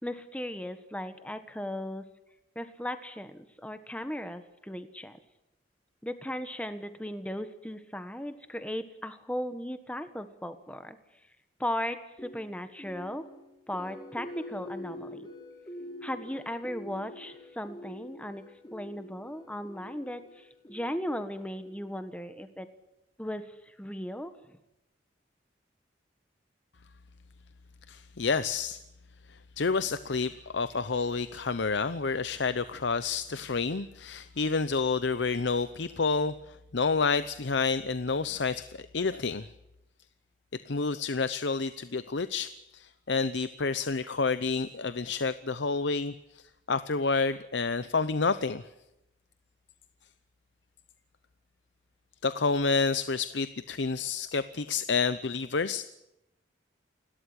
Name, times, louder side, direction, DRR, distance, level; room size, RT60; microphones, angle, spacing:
voice 1, 0.0-2.1 2.5-5.2 6.0-11.0 11.6-13.3 13.7-15.3 16.0-22.7 23.2-24.6, left 1 dB, 5° left, 9 dB, 1.4 m, -37 dB
sound 1, 12.2-22.3, left 1 dB, 20° left, 4.0 m, -46 dB
voice 2, 27.9-28.8 29.3-39.5 40.5-46.4 46.7-48.6 52.2-55.8, left 4 dB, 75° left, 13 dB, 0.8 m, -29 dB
29.0 x 13.0 x 9.9 m, 0.90 s
head